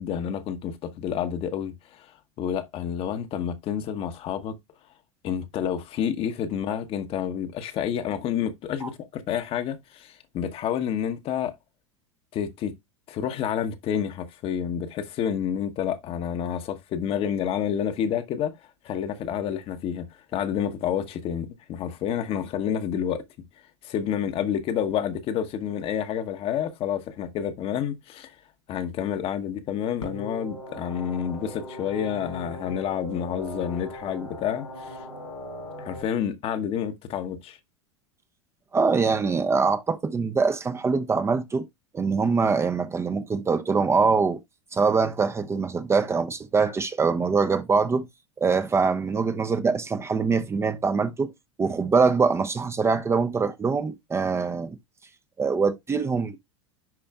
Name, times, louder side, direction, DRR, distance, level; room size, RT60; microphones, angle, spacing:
voice 1, 0.0-2.1 2.4-4.5 5.2-11.5 12.3-12.7 13.1-18.6 18.8-23.2 23.8-28.4 28.7-35.0 35.8-37.6, left 9 dB, 40° left, 1.0 m, -29 dB
sound 1, 30.0-36.0, left 1 dB, 85° left, 4.2 m, -39 dB
voice 2, 38.7-41.7 41.9-44.4 44.7-48.1 48.4-51.3 51.6-54.8 55.4-56.4, right 4 dB, 15° right, 0.7 m, -23 dB
10.5 x 4.3 x 2.3 m
figure-of-eight pair, 85°, 15 cm